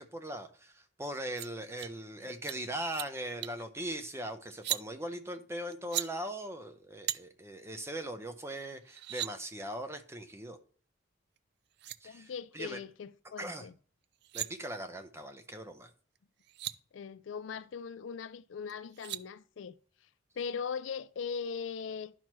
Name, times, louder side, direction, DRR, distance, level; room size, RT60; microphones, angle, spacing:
voice 1, 0.0-10.6 12.0-12.8 13.4-13.7 14.3-15.9, right 1 dB, 15° right, 0.8 m, -40 dB
sound 1, 1.4-1.5 1.8-1.9 2.3-2.6 2.8-3.1 3.4-3.6 4.5-4.8 5.7-6.1 7.1-7.2 8.5-8.6 8.8-9.3 11.4-11.5 11.7-12.0 14.0-14.5 16.1-16.2 16.4-16.7 18.7-19.2, right 14 dB, 60° right, 0.4 m, -37 dB
voice 2, 12.0-13.7 16.9-19.8 20.4-22.1, left 6 dB, 75° left, 0.4 m, -40 dB
10.5 x 5.9 x 3.1 m
head